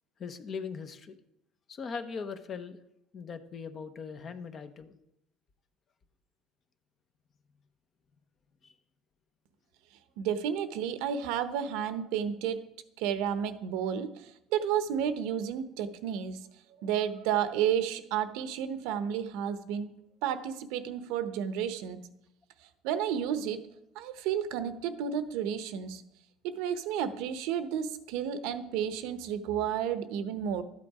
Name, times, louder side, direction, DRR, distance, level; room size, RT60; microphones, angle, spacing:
voice 1, 0.2-1.2 1.7-2.8 3.1-5.0 8.6-8.7, left 5 dB, 35° left, 10 dB, 0.8 m, -40 dB
voice 2, 10.2-12.7 13.0-16.5 16.8-22.1 22.8-23.6 23.9-26.0 26.4-30.6, right 8 dB, 80° right, 11 dB, 0.9 m, -32 dB
13.0 x 8.4 x 4.8 m, 0.83 s
cardioid pair, 145°, 0 cm